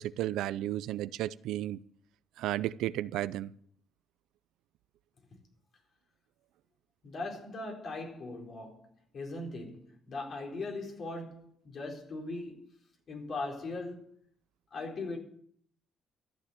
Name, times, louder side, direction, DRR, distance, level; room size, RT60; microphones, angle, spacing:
voice 1, 0.0-1.8 2.4-3.5, right 14 dB, 90° right, 0.4 m, -33 dB
voice 2, 7.0-8.9 9.1-12.7 13.1-14.1 14.7-15.2, left 2 dB, 55° left, 4.1 m, -39 dB
13.5 x 7.1 x 9.3 m
cardioid pair, 90°, 0 cm